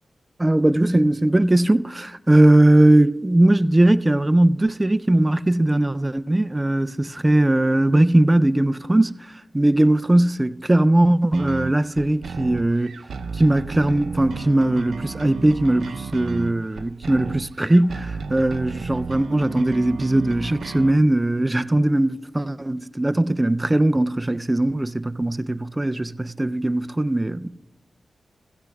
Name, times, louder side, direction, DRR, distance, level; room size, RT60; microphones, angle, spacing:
voice 1, 0.4-13.0 13.3-27.5, right 1 dB, 15° right, 0.3 m, -19 dB
sound 1, 11.3-20.9, right 5 dB, 85° right, 0.5 m, -33 dB
16.0 x 15.0 x 2.3 m
wide cardioid pair, 105°, 0 cm